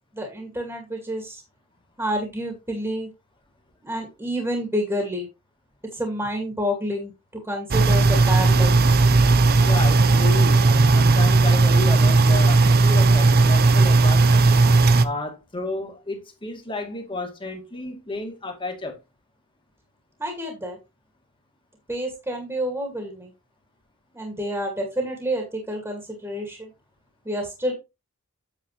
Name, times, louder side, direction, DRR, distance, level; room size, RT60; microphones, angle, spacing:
voice 1, 0.1-1.4 2.0-3.1 3.8-5.3 5.9-9.0 20.2-20.8 21.9-23.3 24.1-26.7 27.2-27.7, equal, 15° right, 2.2 m, -29 dB
sound 1, 7.7-15.1, right 3 dB, 45° right, 0.6 m, -16 dB
voice 2, 9.6-14.5 15.0-19.0, left 2 dB, 25° left, 2.2 m, -32 dB
8.8 x 7.2 x 3.2 m
head